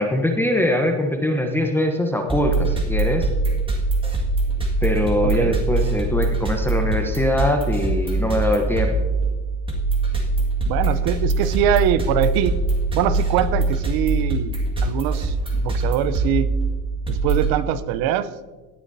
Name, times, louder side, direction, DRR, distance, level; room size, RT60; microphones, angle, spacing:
voice 1, 0.0-3.3 4.8-8.9, left 1 dB, 5° left, 3 dB, 0.9 m, -22 dB
sound 1, 2.3-17.5, right 2 dB, 15° right, 1.9 m, -23 dB
voice 2, 5.2-5.5 10.7-12.5 12.9-16.5 17.1-18.3, right 10 dB, 65° right, 14 dB, 0.8 m, -23 dB
17.5 x 9.9 x 2.7 m, 1.3 s
supercardioid pair, 125°, 40 cm